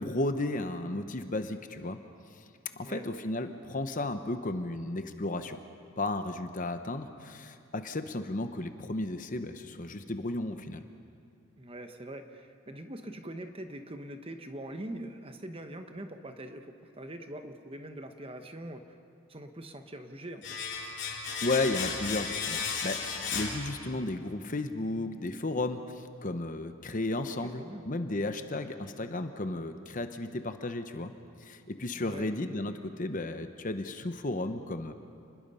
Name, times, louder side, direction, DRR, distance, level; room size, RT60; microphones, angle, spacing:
voice 1, 0.0-2.0 2.3-2.4 2.7-5.6 6.0-10.8 21.4-31.1 31.4-34.9, left 2 dB, 35° left, 8 dB, 0.9 m, -34 dB
voice 2, 11.6-19.0 19.3-20.6 27.3-27.8 32.0-32.3, right 1 dB, 25° right, 6 dB, 1.1 m, -43 dB
Domestic sounds home sounds, 20.4-24.2 24.5-24.6, left 5 dB, 55° left, 3.7 m, -35 dB
30.0 x 21.0 x 5.6 m, 2.3 s
head